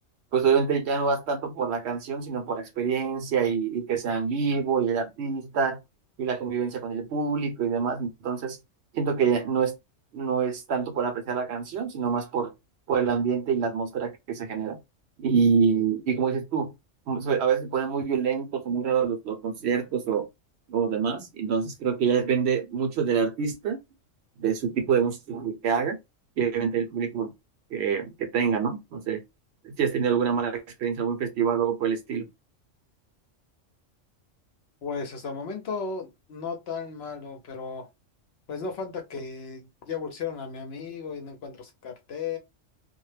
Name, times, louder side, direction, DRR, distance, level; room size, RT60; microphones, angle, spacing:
voice 1, 0.3-5.8 6.2-8.6 8.9-9.7 10.1-12.5 12.9-14.8 15.2-16.7 17.1-20.2 20.7-23.8 24.4-26.0 26.4-27.3 27.7-29.2 29.6-32.3, right 6 dB, 65° right, 0.8 m, -26 dB
voice 2, 34.8-37.9 38.5-42.4, left 5 dB, 65° left, 0.8 m, -35 dB
2.2 x 2.1 x 3.1 m
omnidirectional pair, 1.3 m